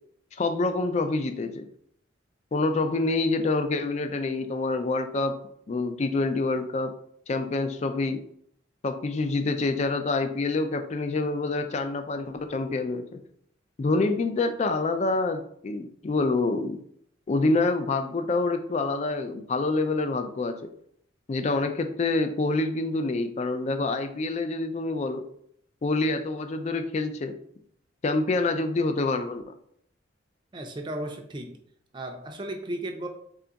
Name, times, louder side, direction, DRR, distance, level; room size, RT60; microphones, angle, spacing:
voice 1, 0.4-1.7 2.5-5.4 5.7-6.9 7.3-8.2 8.8-13.2 13.8-16.8 17.3-20.7 21.3-25.3 25.8-27.4 28.0-29.5, left 3 dB, 35° left, 8 dB, 0.3 m, -27 dB
voice 2, 30.5-31.6 31.9-33.1, right 1 dB, 25° right, 4 dB, 0.4 m, -35 dB
3.3 x 2.4 x 3.9 m, 0.68 s
head